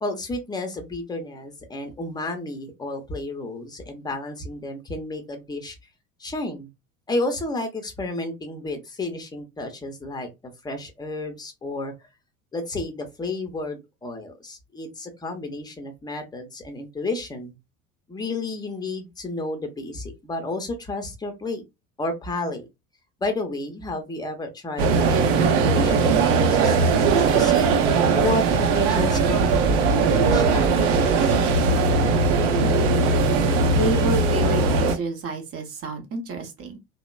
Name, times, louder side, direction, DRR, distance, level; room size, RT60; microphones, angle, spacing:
voice 1, 0.0-5.8 6.2-6.7 7.1-10.3 10.6-11.9 12.5-17.5 18.1-21.6 22.0-22.7 23.2-31.3, left 2 dB, 10° left, 0.7 m, -31 dB
sound 1, 24.8-34.9, right 4 dB, 60° right, 0.6 m, -19 dB
voice 2, 33.7-36.8, right 2 dB, 35° right, 0.9 m, -29 dB
2.9 x 2.0 x 2.2 m
figure-of-eight pair, 65°, 42 cm